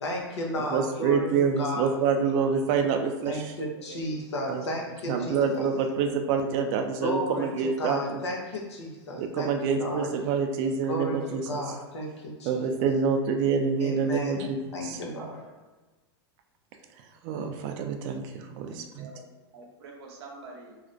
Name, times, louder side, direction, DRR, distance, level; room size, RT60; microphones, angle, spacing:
voice 1, 0.0-1.3 1.6-1.9 3.2-5.7 7.0-10.1 10.8-11.2 11.5-12.6 13.8-15.4 17.4-17.5, equal, 90° left, 0 dB, 0.6 m, -34 dB
voice 2, 0.7-3.5 4.5-4.6 5.1-8.2 9.2-11.6 12.5-14.6 14.8-15.0 17.2-19.0, right 5 dB, 50° right, 5 dB, 0.4 m, -27 dB
voice 3, 4.3-5.0 5.8-5.9 14.4-14.5 15.2-15.5 18.7-20.8, right 3 dB, 70° right, 0 dB, 0.7 m, -47 dB
2.4 x 2.0 x 2.5 m, 1.2 s
hypercardioid pair, 115°, 14 cm